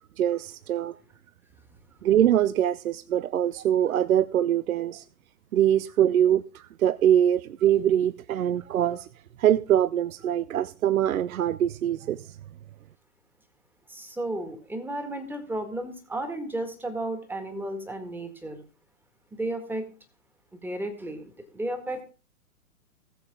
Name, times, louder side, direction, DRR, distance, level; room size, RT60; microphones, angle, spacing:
voice 1, 0.2-0.9 2.0-5.0 5.5-9.1 9.4-12.2, right 10 dB, 75° right, 0.6 m, -23 dB
voice 2, 13.9-18.6 19.3-19.9 20.5-22.0, right 1 dB, 5° right, 1.8 m, -33 dB
19.0 x 7.1 x 3.7 m
hypercardioid pair, 125°, 43 cm